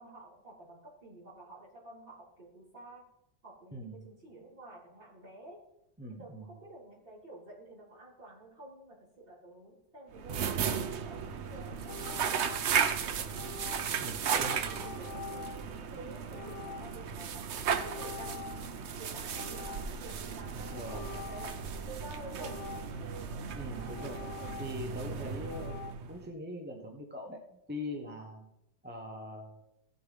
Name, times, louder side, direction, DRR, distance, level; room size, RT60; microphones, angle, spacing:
voice 1, 0.0-3.1 3.4-5.6 6.2-12.5 12.9-13.5 14.1-17.5 17.7-18.5 19.0-21.5 21.8-22.8, right 2 dB, 30° right, -8 dB, 4.8 m, -50 dB
voice 2, 3.7-4.1 6.0-6.5 14.0-14.6 20.5-21.1 23.6-24.3 24.6-28.5 28.8-29.6, left 1 dB, 10° right, 0 dB, 0.8 m, -42 dB
sound 1, 10.1-26.3, right 7 dB, 75° right, 0.6 m, -35 dB
sound 2, 11.9-12.9 13.3-14.1 14.6-15.7 16.3-17.2 17.7-18.9 19.3-20.1 20.6-21.7 22.3-23.2 23.8-25.0 25.4-25.9, left 6 dB, 85° left, 1.5 m, -46 dB
16.0 x 7.9 x 3.5 m, 0.83 s
omnidirectional pair, 2.0 m